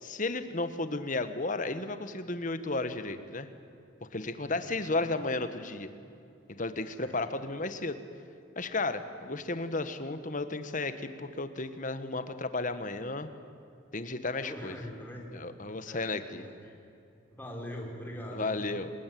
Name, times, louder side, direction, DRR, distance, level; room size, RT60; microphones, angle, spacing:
voice 1, 0.0-3.5 4.1-5.9 6.6-8.0 8.5-13.3 13.9-14.8 15.3-16.4 18.3-18.9, left 2 dB, 40° left, 10 dB, 1.4 m, -33 dB
voice 2, 4.5-5.0 7.0-7.2 14.4-15.3 15.9-16.1 16.4-16.8 17.3-18.7, equal, 10° left, -1 dB, 4.0 m, -42 dB
25.0 x 20.5 x 9.3 m, 2.6 s
head